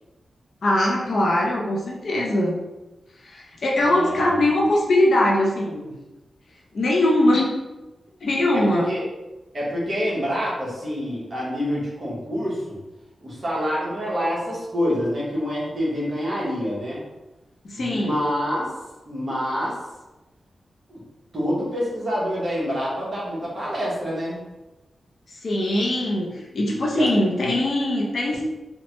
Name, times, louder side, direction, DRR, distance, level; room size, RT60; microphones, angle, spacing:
voice 1, 0.6-2.6 3.2-5.9 6.7-7.5 8.2-8.9 17.6-18.3 25.3-28.4, left 1 dB, 55° left, -1 dB, 0.5 m, -21 dB
voice 2, 3.8-4.4 8.5-9.0 9.5-12.8 13.2-17.0 17.8-18.7 19.0-19.8 20.9-21.0 21.3-24.4 26.7-27.1, equal, 35° right, -6 dB, 1.0 m, -27 dB
3.1 x 2.1 x 2.9 m, 1.1 s
wide cardioid pair, 150°, 0 cm